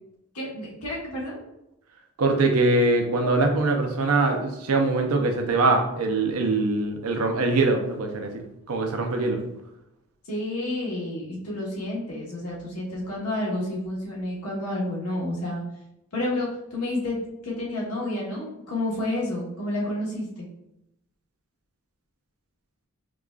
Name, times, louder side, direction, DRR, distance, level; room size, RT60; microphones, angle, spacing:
voice 1, 0.3-1.4 10.3-15.6 16.1-20.5, left 1 dB, 90° left, -4 dB, 1.2 m, -30 dB
voice 2, 2.2-8.3 8.7-9.4, right 2 dB, 75° right, 4 dB, 0.6 m, -22 dB
4.9 x 2.3 x 2.3 m, 0.86 s
head